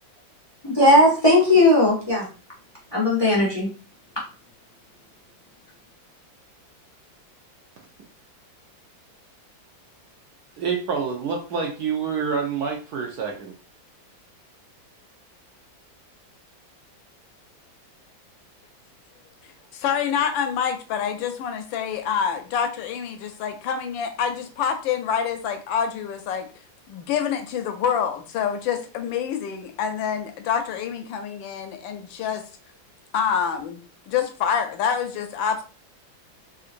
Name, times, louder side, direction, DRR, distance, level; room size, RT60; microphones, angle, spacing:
voice 1, 0.8-2.3 2.9-3.7, left 1 dB, 35° left, -4 dB, 0.4 m, -17 dB
voice 2, 10.6-13.5, right 6 dB, 70° right, 1 dB, 1.0 m, -27 dB
voice 3, 19.4-26.5 26.9-32.5 33.1-35.6, left 7 dB, 80° left, 6 dB, 1.3 m, -27 dB
3.7 x 2.5 x 2.5 m, 0.35 s
omnidirectional pair, 2.1 m